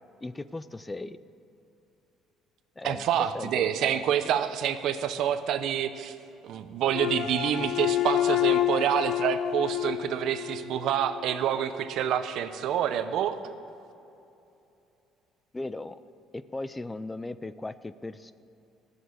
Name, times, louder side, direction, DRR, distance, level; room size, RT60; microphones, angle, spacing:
voice 1, 0.2-1.2 2.8-3.0 3.3-4.1 15.5-16.0 16.3-18.3, left 2 dB, 15° left, 14 dB, 0.4 m, -37 dB
voice 2, 2.8-6.1 6.4-13.4, right 9 dB, 65° right, 11 dB, 0.7 m, -27 dB
sound 1, 6.9-11.2, left 11 dB, 65° left, 0.5 m, -28 dB
15.0 x 7.0 x 8.7 m, 2.8 s
cardioid pair, 120°, 0 cm